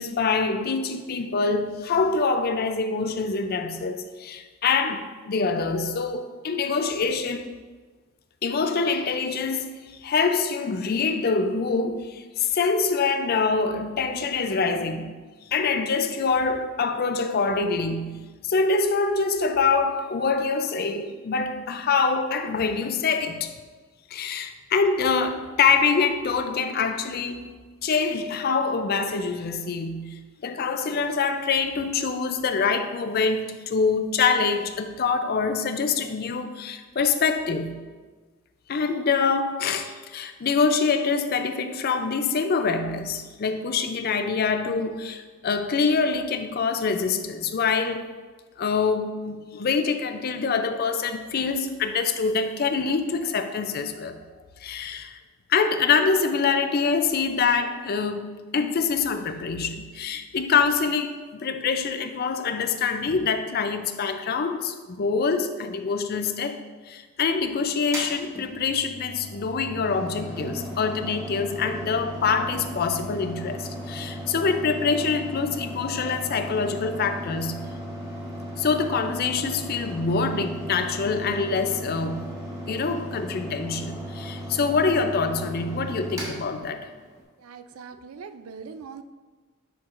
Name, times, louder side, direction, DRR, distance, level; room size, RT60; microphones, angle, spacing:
voice 1, 0.0-7.5 8.4-15.2 15.5-23.5 24.1-27.5 27.8-37.9 38.7-48.1 48.6-54.3 54.6-55.2 55.5-77.8 78.6-82.4 82.7-86.9, left 5 dB, 45° left, 0.4 m, -25 dB
Mechanical fan, 67.8-87.2, equal, 15° right, 1.2 m, -36 dB
voice 2, 87.4-89.0, right 5 dB, 85° right, 0.4 m, -41 dB
10.0 x 4.5 x 2.5 m
head